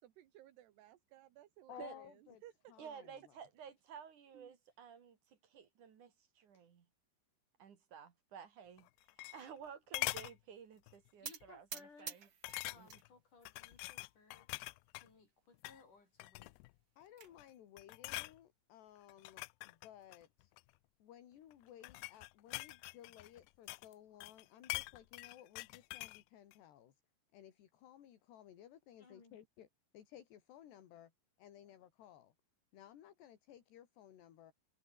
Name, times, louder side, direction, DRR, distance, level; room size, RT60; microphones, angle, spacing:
voice 1, 0.0-1.9 2.4-2.5 2.8-2.9 4.3-4.5, right 13 dB, 70° right, 3.5 m, -59 dB
voice 2, 1.7-2.4 2.7-3.4 17.0-20.5 21.0-27.0 27.3-29.7 29.9-31.1 31.4-32.3 32.7-34.5, left 11 dB, 70° left, 4.4 m, -58 dB
voice 3, 2.8-6.9 7.6-8.9 9.3-12.2 12.8-12.9, right 7 dB, 50° right, 3.4 m, -53 dB
sound 1, 8.8-9.7 9.9-10.4 10.9-11.1 11.4-11.5 12.4-13.1 13.5-15.1 15.5-15.8 16.2-16.7 17.2-17.5 17.8-18.4 19.1-20.7 21.5-23.9 24.2-26.2 26.5-26.6, left 23 dB, 90° left, 2.3 m, -44 dB
voice 4, 11.2-12.2 12.5-16.6 29.0-29.4, left 4 dB, 45° left, 9.0 m, -62 dB
sound 2, 11.2-13.0 13.4-14.0 14.6-14.7 15.0-15.1 15.5-15.6 16.7-17.3, right 8 dB, 85° right, 1.0 m, -49 dB
omnidirectional pair, 5.1 m